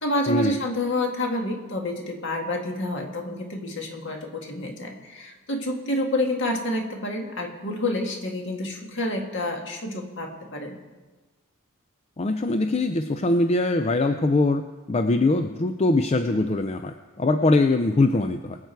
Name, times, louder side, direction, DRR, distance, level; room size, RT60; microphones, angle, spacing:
voice 1, 0.0-10.8, left 1 dB, 55° left, 2 dB, 2.0 m, -28 dB
voice 2, 12.2-14.6 14.9-18.6, left 2 dB, 30° left, 7 dB, 0.4 m, -22 dB
22.5 x 8.1 x 4.6 m, 1.2 s
head